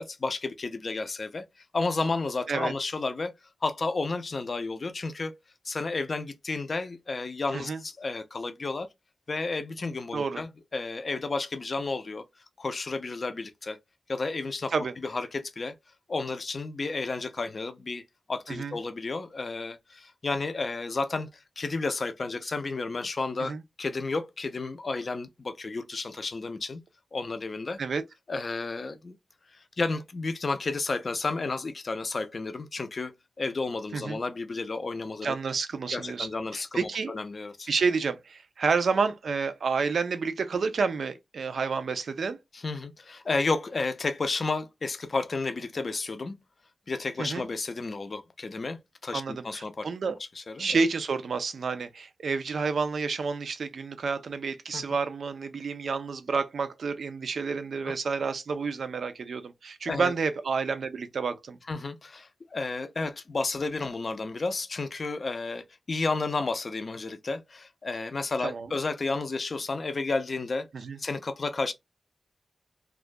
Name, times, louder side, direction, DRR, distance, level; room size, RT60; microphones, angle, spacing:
voice 1, 0.0-1.4 1.7-3.3 3.6-5.3 5.6-8.9 9.3-12.2 12.6-13.8 14.1-14.7 15.0-15.7 16.1-18.0 18.3-26.8 27.1-27.8 28.3-29.2 29.5-35.4 35.9-37.7 42.5-46.4 46.9-49.9 50.4-50.8 54.7-54.8 59.9-60.1 61.7-70.7 71.0-71.7, left 3 dB, 50° left, 0.4 m, -32 dB
voice 2, 10.1-10.4 14.7-14.9 18.5-18.8 23.4-23.6 27.8-28.0 33.9-34.2 35.2-37.1 37.7-42.4 47.2-47.5 49.1-50.2 50.6-61.6 68.4-68.7 70.7-71.0, right 5 dB, 85° right, 0.4 m, -29 dB
2.3 x 2.2 x 2.5 m
wide cardioid pair, 100°, 0 cm